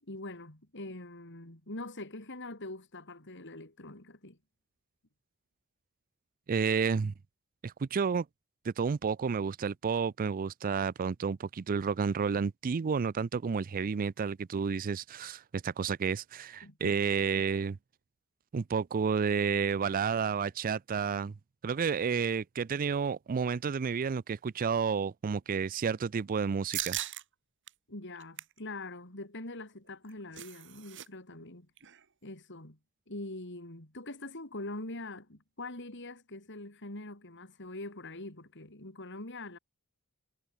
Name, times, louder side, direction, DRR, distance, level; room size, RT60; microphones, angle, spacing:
voice 1, 0.0-4.4 16.6-17.0 27.9-31.7 32.2-32.8 33.1-39.6, left 2 dB, 55° left, 5.0 m, -43 dB
voice 2, 6.5-7.1 7.6-8.3 8.6-17.8 18.5-21.3 21.6-27.0, right 6 dB, 40° right, 0.4 m, -31 dB
sound 1, 26.7-27.2 27.7-27.8 28.1-28.6 29.9-31.1 31.3-31.4 31.8-32.0, right 13 dB, 60° right, 3.1 m, -38 dB
head